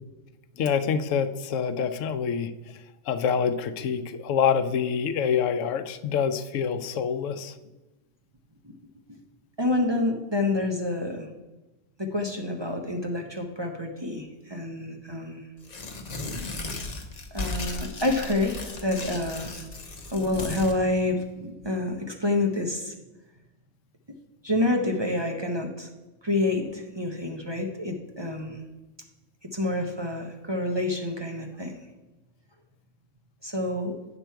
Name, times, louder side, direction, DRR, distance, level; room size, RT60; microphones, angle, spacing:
voice 1, 0.6-2.5 3.1-7.5, left 7 dB, 85° left, 11 dB, 1.0 m, -26 dB
voice 2, 9.6-11.3 12.0-15.5 17.3-19.7 20.1-22.9 24.4-25.9 26.2-28.6 29.5-31.8 33.4-33.9, left 2 dB, 25° right, 2 dB, 0.7 m, -28 dB
Tearing, 15.6-20.8, left 3 dB, 35° left, 0.9 m, -36 dB
8.8 x 6.0 x 4.6 m, 1.1 s
omnidirectional pair, 1.3 m